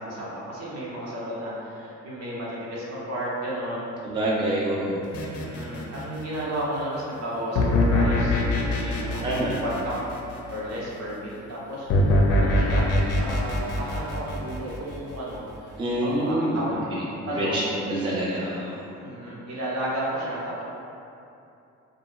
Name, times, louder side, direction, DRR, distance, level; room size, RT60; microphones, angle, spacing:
voice 1, 0.0-3.9 5.3-10.0 10.5-17.7 19.0-20.6, right 1 dB, 60° right, -7 dB, 0.8 m, -33 dB
voice 2, 4.0-5.0 9.2-9.6 15.8-17.0 17.3-18.8, right 1 dB, 15° right, -6 dB, 0.4 m, -26 dB
sound 1, 5.1-6.3 7.6-10.6 11.9-15.1, left 1 dB, 55° left, 0.4 m, -23 dB
2.8 x 2.4 x 2.3 m, 2.7 s
cardioid pair, 90°, 30 cm